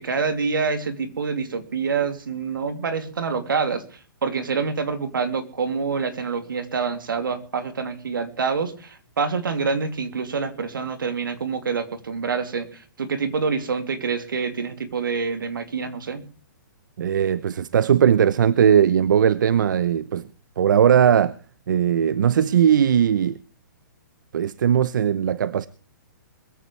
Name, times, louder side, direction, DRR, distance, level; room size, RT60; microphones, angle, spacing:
voice 1, 0.0-3.8 4.2-16.2, right 5 dB, 90° right, 2.9 m, -26 dB
voice 2, 17.0-20.3 20.6-21.3 21.7-23.4 24.3-25.7, right 8 dB, 70° right, 0.8 m, -19 dB
21.5 x 14.5 x 3.3 m
hypercardioid pair, 155°, 11 cm